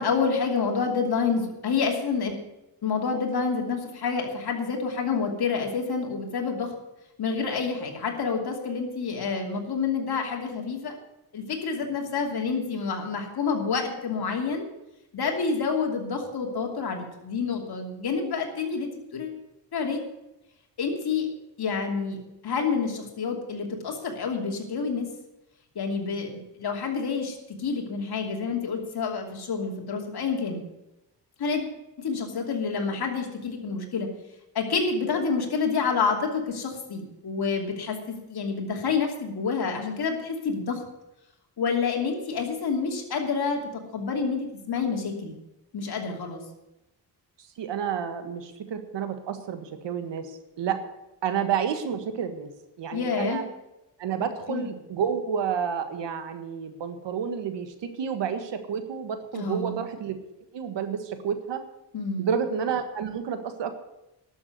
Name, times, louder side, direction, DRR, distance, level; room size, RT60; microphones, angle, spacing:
voice 1, 0.0-2.4 2.8-6.7 7.2-11.0 11.3-14.7 15.1-19.4 19.7-20.0 20.8-21.3 21.6-25.1 25.7-30.6 31.4-31.6 32.0-34.1 34.5-40.8 41.6-43.6 43.9-45.3 45.7-46.4 52.9-53.4 54.5-54.7 59.3-59.8 61.9-62.3, left 5 dB, 65° left, 2 dB, 2.8 m, -28 dB
voice 2, 47.6-50.8 51.2-52.5 52.8-53.4 54.0-60.2 60.5-61.6 62.2-63.8, right 7 dB, 90° right, 8 dB, 1.6 m, -30 dB
12.0 x 7.2 x 9.5 m, 0.93 s
cardioid pair, 105°, 42 cm